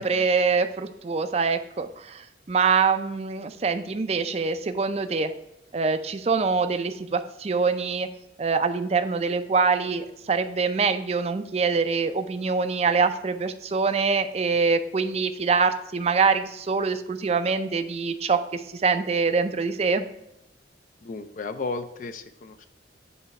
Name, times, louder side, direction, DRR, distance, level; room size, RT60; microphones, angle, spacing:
voice 1, 0.0-5.3 5.7-8.1 8.4-20.1, right 5 dB, 35° right, 10 dB, 0.4 m, -24 dB
voice 2, 21.0-22.7, left 3 dB, 45° left, 9 dB, 0.4 m, -34 dB
7.9 x 3.0 x 5.3 m, 0.86 s
head